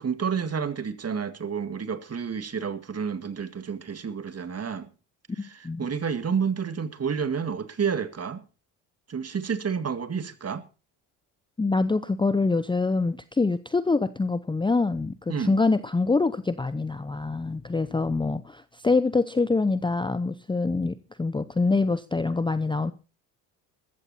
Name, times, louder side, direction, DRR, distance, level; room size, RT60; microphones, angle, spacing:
voice 1, 0.0-4.9 5.4-8.4 9.1-10.7 15.3-15.6, right 6 dB, 30° right, 2.1 m, -30 dB
voice 2, 5.4-5.9 11.6-22.9, left 3 dB, 10° left, 0.7 m, -25 dB
14.5 x 14.0 x 4.3 m
hypercardioid pair, 65°, 48 cm